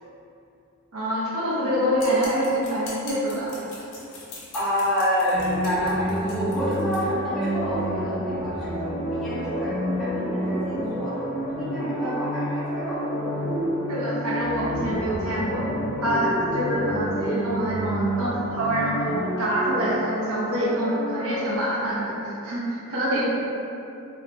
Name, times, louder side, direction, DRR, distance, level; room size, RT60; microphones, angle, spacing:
voice 1, 0.9-3.5 13.9-15.6 16.0-23.2, equal, 75° right, -6 dB, 0.6 m, -26 dB
sound 1, 2.0-7.0, left 2 dB, 55° left, 0.6 m, -42 dB
voice 2, 4.5-13.1 23.2-23.3, equal, ahead, -13 dB, 0.8 m, -28 dB
sound 2, 5.3-21.6, equal, 20° right, 0.9 m, -29 dB
3.1 x 2.1 x 2.9 m, 2.7 s
head